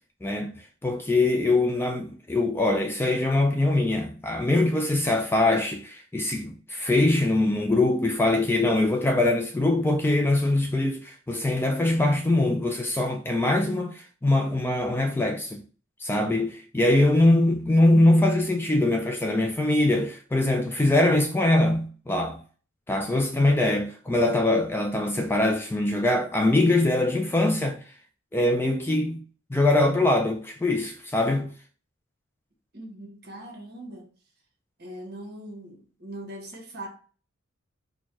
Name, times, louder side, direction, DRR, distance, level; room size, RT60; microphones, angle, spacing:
voice 1, 0.2-15.6 16.0-22.4 22.9-27.8 28.3-29.2 29.5-31.5, left 2 dB, 10° left, 0.3 m, -23 dB
voice 2, 32.7-34.1 34.8-36.9, right 1 dB, 50° right, 1.2 m, -40 dB
4.3 x 2.2 x 4.6 m
head